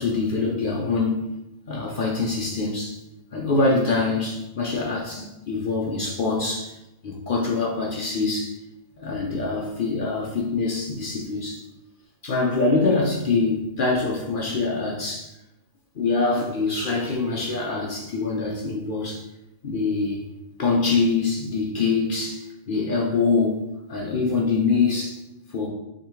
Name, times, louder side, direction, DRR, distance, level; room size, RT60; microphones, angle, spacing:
voice 1, 0.0-1.4 1.7-3.0 3.3-6.7 7.0-8.6 9.0-11.6 12.2-15.3 16.0-19.2 19.6-20.2 20.6-25.2 25.5-25.7, left 3 dB, 50° left, -2 dB, 0.6 m, -24 dB
3.7 x 3.2 x 4.5 m, 0.92 s
omnidirectional pair, 1.6 m